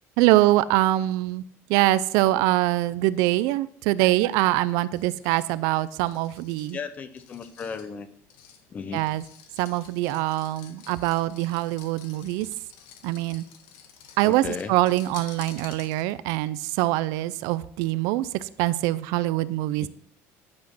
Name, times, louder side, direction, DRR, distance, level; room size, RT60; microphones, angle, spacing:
voice 1, 0.2-1.4 1.7-6.8 8.9-9.2 9.6-12.5 13.0-13.4 14.2-19.9, right 16 dB, 70° right, 16 dB, 0.5 m, -24 dB
sound 1, 4.9-16.3, left 8 dB, 75° left, 1.7 m, -50 dB
voice 2, 6.7-8.1 8.7-9.0 14.2-14.7, left 5 dB, 25° left, 12 dB, 0.8 m, -35 dB
11.0 x 6.2 x 6.1 m, 0.63 s
cardioid pair, 170°, 6 cm